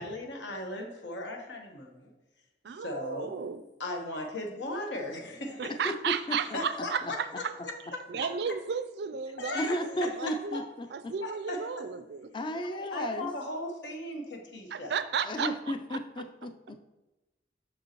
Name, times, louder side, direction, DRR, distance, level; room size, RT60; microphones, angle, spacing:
voice 1, 0.0-2.1 2.8-3.3 3.8-5.7 6.5-6.9 7.6-8.3 9.4-10.2 10.5-10.6 11.2-11.6 12.7-14.9, left 1 dB, 85° left, 2 dB, 1.1 m, -37 dB
voice 2, 2.6-3.6 5.6-7.5 8.1-9.8 10.2-10.6 10.9-12.9 14.7-16.0, right 6 dB, 65° right, 11 dB, 0.4 m, -34 dB
voice 3, 6.3-6.6 9.5-11.1 12.3-13.3 15.2-16.9, equal, 25° left, 8 dB, 0.3 m, -34 dB
6.2 x 5.3 x 3.0 m, 1.0 s
head